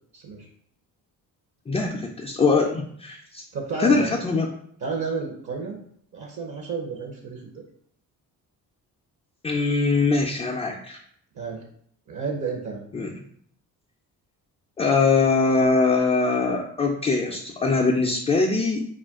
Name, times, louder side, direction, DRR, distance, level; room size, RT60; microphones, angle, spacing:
voice 1, 0.1-0.5 3.5-4.2 4.8-5.8 6.1-7.6 11.3-11.6 12.1-12.9, right 4 dB, 45° right, 0 dB, 0.7 m, -31 dB
voice 2, 1.7-3.4 3.8-4.5 9.4-11.0 12.9-13.1 14.8-18.9, left 4 dB, 15° left, 0 dB, 0.3 m, -22 dB
2.4 x 2.2 x 3.5 m, 0.65 s
supercardioid pair, 60°, 41 cm